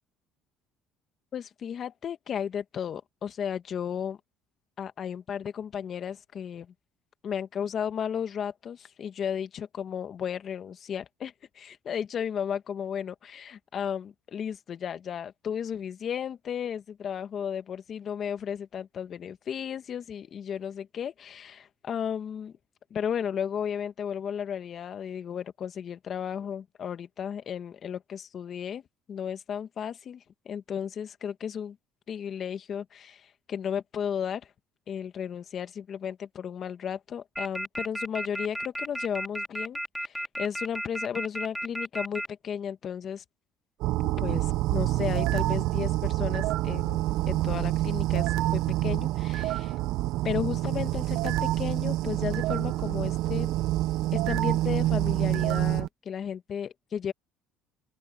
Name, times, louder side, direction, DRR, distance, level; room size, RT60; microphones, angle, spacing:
voice 1, 1.3-4.2 4.8-6.7 7.2-22.5 22.9-28.8 29.1-31.8 32.1-34.5 34.9-43.2 44.2-47.0 47.3-48.3 48.5-49.8 50.2-53.5 54.1-57.1, left 8 dB, 45° left, 1.7 m, -34 dB
sound 1, 37.4-42.3, equal, ahead, 2.1 m, -32 dB
sound 2, 43.8-55.9, right 16 dB, 75° right, 0.7 m, -27 dB
open air
cardioid pair, 100°, 0 cm